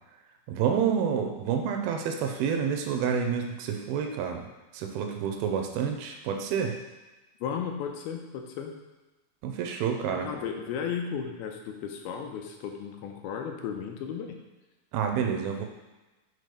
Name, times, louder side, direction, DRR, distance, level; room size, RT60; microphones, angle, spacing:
voice 1, 0.5-4.5 4.7-6.8 9.4-10.3 14.9-15.7, right 7 dB, 85° right, 4 dB, 2.4 m, -28 dB
voice 2, 7.4-8.7 10.0-14.4, left 7 dB, 85° left, 3 dB, 2.6 m, -35 dB
6.7 x 4.1 x 5.0 m, 1.1 s
omnidirectional pair, 4.5 m